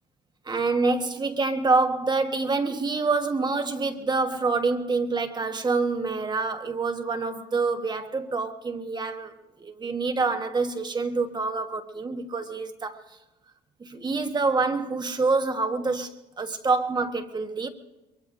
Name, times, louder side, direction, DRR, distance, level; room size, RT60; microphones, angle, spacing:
voice 1, 0.4-9.3 9.6-13.0 13.8-17.7, right 3 dB, 25° right, 1.3 m, -26 dB
23.5 x 23.0 x 2.6 m
cardioid pair, 110°, 17 cm